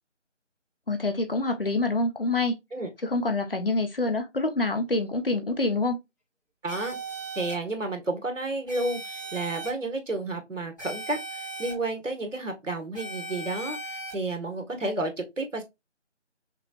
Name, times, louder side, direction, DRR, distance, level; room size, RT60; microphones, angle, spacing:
voice 1, 0.9-2.5 3.0-6.0, left 2 dB, 50° left, 1.2 m, -26 dB
voice 2, 6.6-7.0 7.4-15.6, right 2 dB, 90° right, 1.7 m, -31 dB
sound 1, 6.7-7.5 8.7-9.7 10.8-11.7 12.9-14.1, right 2 dB, 15° left, 1.5 m, -37 dB
5.8 x 3.3 x 2.5 m
figure-of-eight pair, 175°, 37 cm